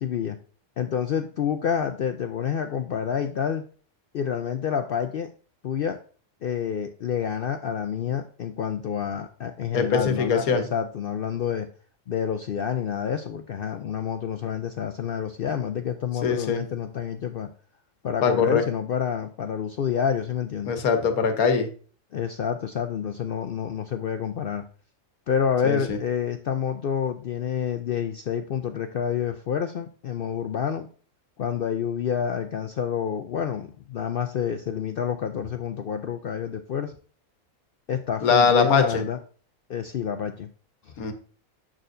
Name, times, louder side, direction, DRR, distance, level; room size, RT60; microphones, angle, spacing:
voice 1, 0.0-0.4 0.8-3.6 4.1-5.3 5.6-6.0 6.4-11.7 12.1-17.5 18.0-20.7 22.1-24.6 25.3-30.9 31.4-36.9 37.9-39.2 39.7-40.5 40.9-41.0, left 8 dB, 70° left, 7 dB, 0.5 m, -28 dB
voice 2, 9.7-10.6 16.2-16.6 18.2-18.6 20.7-21.7 25.6-26.0 38.2-39.0 41.0-41.1, left 5 dB, 90° left, 7 dB, 1.5 m, -22 dB
7.4 x 6.5 x 2.6 m, 0.41 s
omnidirectional pair, 1.5 m